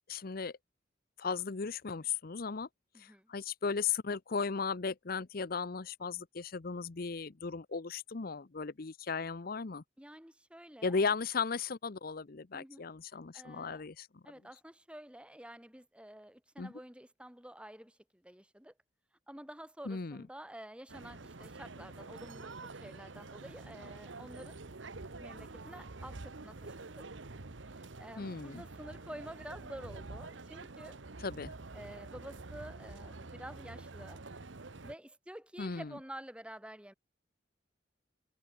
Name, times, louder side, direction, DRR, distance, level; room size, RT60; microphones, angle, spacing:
voice 1, 0.1-0.5 1.2-2.7 3.0-9.8 10.8-14.1 16.6-16.7 19.9-20.2 28.2-28.6 31.2-31.5 35.6-35.9, left 5 dB, 50° left, 0.7 m, -36 dB
voice 2, 2.9-3.3 10.0-11.0 12.5-12.8 13.3-13.8 14.2-18.7 19.3-24.6 25.2-27.1 27.8-31.0 31.7-34.2 34.8-36.9, right 1 dB, 5° right, 2.2 m, -50 dB
sound 1, 20.9-34.9, right 3 dB, 75° right, 1.3 m, -47 dB
head